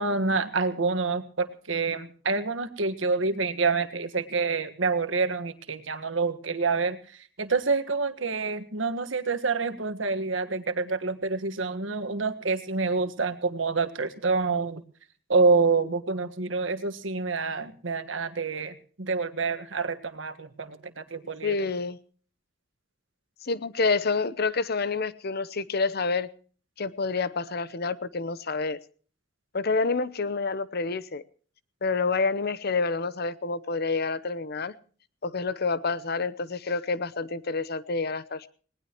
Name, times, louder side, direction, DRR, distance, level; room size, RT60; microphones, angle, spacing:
voice 1, 0.0-7.0 7.4-14.8 15.3-21.5, right 4 dB, 85° right, 9 dB, 1.6 m, -27 dB
voice 2, 21.4-22.0 23.4-26.3 26.8-28.8 29.5-31.2 31.8-34.7 35.2-38.5, left 4 dB, 55° left, 17 dB, 0.9 m, -28 dB
19.5 x 19.0 x 3.0 m, 0.42 s
head